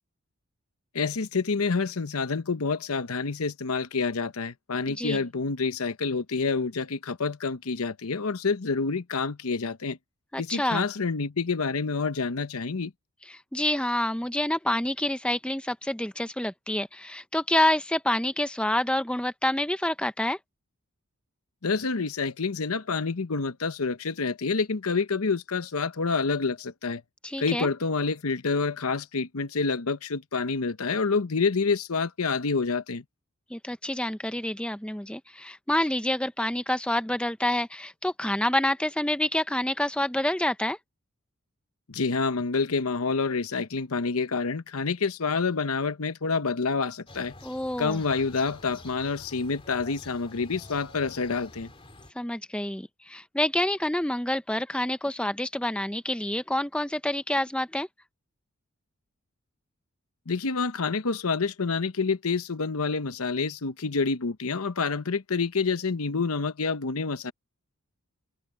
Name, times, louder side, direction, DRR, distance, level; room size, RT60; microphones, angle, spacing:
voice 1, 0.9-10.0 10.4-12.9 21.6-27.0 27.4-33.0 41.9-47.3 47.8-51.7 60.3-67.3, left 4 dB, 80° left, 0.9 m, -28 dB
voice 2, 10.3-10.9 13.5-20.4 27.2-27.7 33.5-40.8 47.4-48.0 52.2-57.9, left 1 dB, 5° left, 0.6 m, -27 dB
sound 1, 47.1-52.1, left 2 dB, 25° left, 3.1 m, -48 dB
open air
head